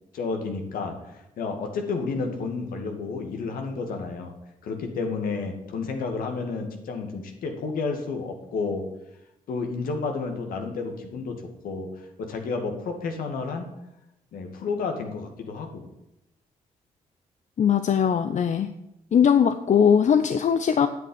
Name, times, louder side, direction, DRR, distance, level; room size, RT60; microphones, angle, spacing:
voice 1, 0.1-4.3 4.6-8.9 9.5-13.7 14.3-15.9, left 4 dB, 75° left, 4 dB, 2.2 m, -31 dB
voice 2, 17.6-18.7 19.1-20.9, left 7 dB, 55° left, 10 dB, 0.7 m, -20 dB
9.5 x 8.5 x 8.7 m, 0.88 s
supercardioid pair, 55°, 15 cm